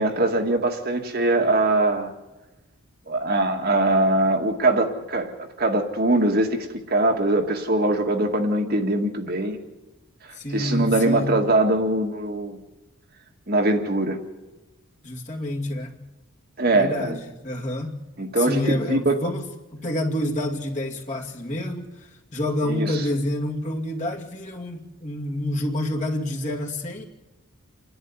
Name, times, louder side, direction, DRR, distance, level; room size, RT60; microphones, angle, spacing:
voice 1, 0.0-2.1 3.1-5.3 5.6-9.6 10.5-12.6 13.5-14.2 16.6-17.2 18.2-19.2 22.7-23.0, right 2 dB, 45° right, 3 dB, 2.0 m, -22 dB
voice 2, 10.3-11.4 15.0-16.0 16.7-19.5 19.7-27.0, left 1 dB, 35° left, 0 dB, 2.4 m, -28 dB
28.5 x 11.0 x 9.7 m, 1.1 s
head